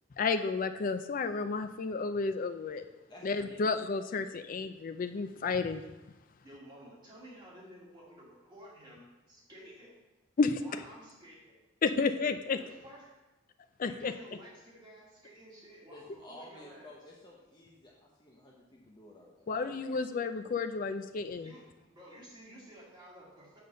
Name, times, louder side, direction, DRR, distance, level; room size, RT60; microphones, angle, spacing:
voice 1, 0.2-2.8 3.2-5.8 10.4-10.6 11.8-12.6 13.8-14.1 19.5-21.5, left 4 dB, 40° left, 9 dB, 0.4 m, -31 dB
voice 2, 3.1-3.9 15.9-20.4, left 1 dB, 20° left, -3 dB, 0.9 m, -53 dB
voice 3, 6.4-9.9 10.6-11.6 12.6-13.2 13.8-17.0 21.3-23.6, equal, 25° right, -6 dB, 2.4 m, -52 dB
6.9 x 3.9 x 6.5 m, 1.1 s
head